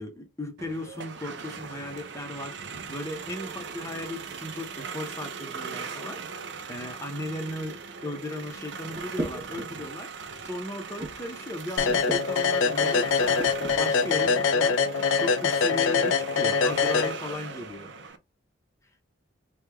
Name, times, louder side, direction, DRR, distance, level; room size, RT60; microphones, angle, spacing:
voice 1, 0.0-10.1 10.4-18.1, left 1 dB, 15° left, 0.7 m, -36 dB
sound 1, 0.6-18.2, right 5 dB, 65° right, 0.5 m, -40 dB
sound 2, 8.9-9.8 10.3-10.5 11.0-11.4 11.8-12.3 13.0-13.8, right 1 dB, 30° right, 0.9 m, -36 dB
sound 3, 11.8-17.6, left 5 dB, 80° left, 0.4 m, -24 dB
3.3 x 2.2 x 3.3 m
head